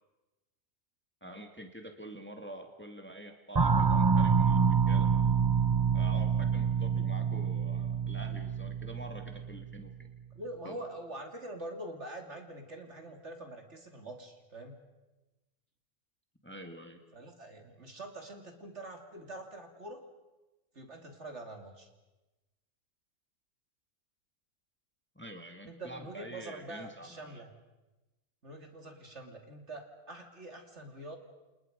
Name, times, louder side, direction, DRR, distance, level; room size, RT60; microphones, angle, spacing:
voice 1, 1.2-5.1 5.9-10.1 10.6-10.8 16.4-17.0 25.2-27.4, right 1 dB, 10° left, 4 dB, 2.1 m, -47 dB
sound 1, 3.5-9.9, right 6 dB, 20° right, 0.7 m, -27 dB
voice 2, 10.3-14.8 17.1-20.0 20.7-21.9 25.6-27.5 28.4-31.2, right 1 dB, 55° right, 4 dB, 3.2 m, -45 dB
29.5 x 28.0 x 5.3 m, 1.1 s
omnidirectional pair, 1.4 m